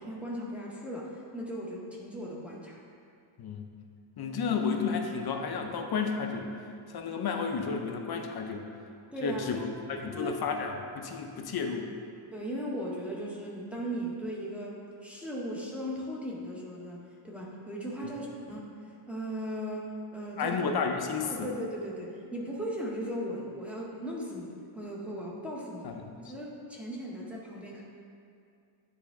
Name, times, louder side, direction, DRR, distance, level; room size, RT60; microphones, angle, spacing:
voice 1, 0.0-2.8 9.1-9.7 10.1-10.4 12.3-20.6 21.3-27.8, equal, 5° right, -4 dB, 0.8 m, -37 dB
voice 2, 4.2-6.6 6.9-8.7 9.2-9.6 9.9-11.9 18.1-18.2 20.4-21.5 25.8-25.9, left 5 dB, 50° left, 3 dB, 0.6 m, -32 dB
9.6 x 3.5 x 3.5 m, 2.4 s
wide cardioid pair, 160°, 49 cm